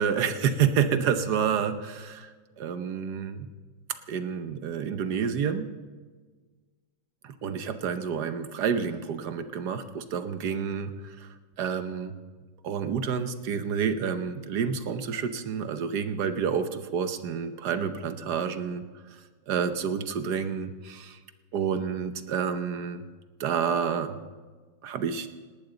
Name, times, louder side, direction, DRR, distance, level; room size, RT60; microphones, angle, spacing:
voice 1, 0.0-2.3 2.6-3.5 4.1-5.7 7.2-11.3 11.6-12.2 12.6-18.8 19.5-21.2 21.5-23.0 23.4-24.2 24.8-25.3, right 7 dB, 70° right, 9 dB, 1.5 m, -29 dB
18.5 x 18.5 x 3.9 m, 1.4 s
omnidirectional pair, 1.9 m